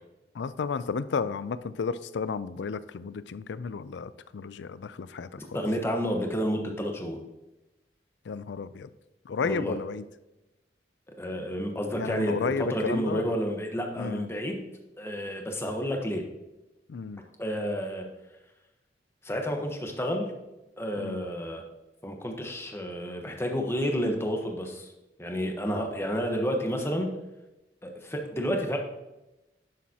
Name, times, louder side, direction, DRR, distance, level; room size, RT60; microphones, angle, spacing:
voice 1, 0.3-5.6 8.3-8.9 9.3-10.0 12.0-13.3 14.0-14.3 16.9-17.2 21.0-21.3, left 5 dB, 80° left, 15 dB, 0.4 m, -33 dB
voice 2, 5.5-7.2 9.4-9.7 11.2-14.6 15.0-16.2 17.4-18.0 19.2-20.3 20.8-21.6 22.0-24.9 25.2-27.1 27.8-28.8, equal, 15° left, 2 dB, 1.1 m, -30 dB
10.5 x 7.2 x 2.8 m, 0.99 s
head